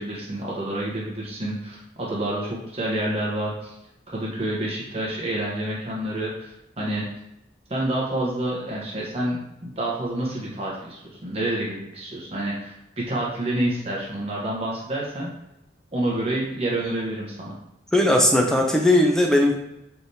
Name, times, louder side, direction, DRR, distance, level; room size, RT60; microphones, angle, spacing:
voice 1, 0.0-3.7 4.1-7.0 7.7-15.3 15.9-17.5, right 1 dB, 30° right, -4 dB, 0.9 m, -28 dB
voice 2, 17.9-19.5, left 1 dB, 5° left, 2 dB, 0.6 m, -18 dB
5.8 x 3.3 x 2.7 m, 0.88 s
head